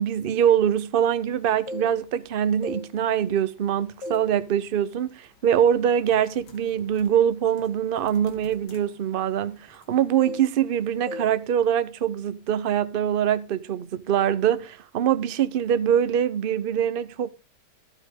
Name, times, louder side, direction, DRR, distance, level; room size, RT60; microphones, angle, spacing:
voice 1, 0.0-17.3, right 9 dB, 50° right, 0.7 m, -23 dB
sound 1, 1.4-2.2 2.6-3.6 4.0-4.4 4.7-5.0 5.6-5.7 6.1-9.9 10.2-10.8 11.1-11.4 11.6-11.9, left 2 dB, 80° left, 2.3 m, -39 dB
12.5 x 9.1 x 3.7 m
omnidirectional pair, 1.8 m